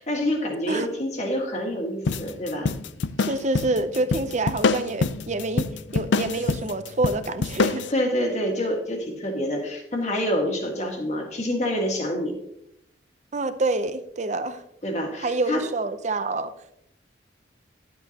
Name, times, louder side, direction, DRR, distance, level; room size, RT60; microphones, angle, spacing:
voice 1, 0.0-2.7 7.8-12.4 14.8-15.7, equal, 35° left, 2 dB, 1.8 m, -27 dB
sound 1, 2.1-7.9, left 4 dB, 70° left, 0.5 m, -26 dB
voice 2, 3.2-5.7 5.9-7.8 13.3-14.6 15.2-16.5, right 2 dB, 40° right, 11 dB, 0.6 m, -27 dB
11.5 x 8.1 x 2.9 m, 0.77 s
head